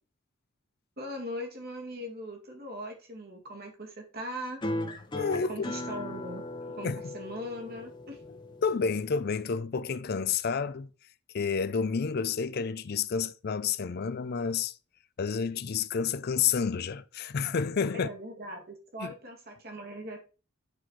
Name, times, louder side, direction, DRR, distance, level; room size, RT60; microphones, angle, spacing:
voice 1, 1.0-4.6 5.5-6.4 6.7-8.2 17.9-20.2, equal, 50° right, 1.9 m, -40 dB
sound 1, 4.6-9.6, left 2 dB, 25° left, 0.9 m, -38 dB
voice 2, 5.1-5.5 6.8-7.1 8.6-10.9 11.3-14.7 15.2-18.1 19.0-19.1, left 6 dB, 50° left, 0.4 m, -30 dB
8.0 x 4.3 x 4.5 m
head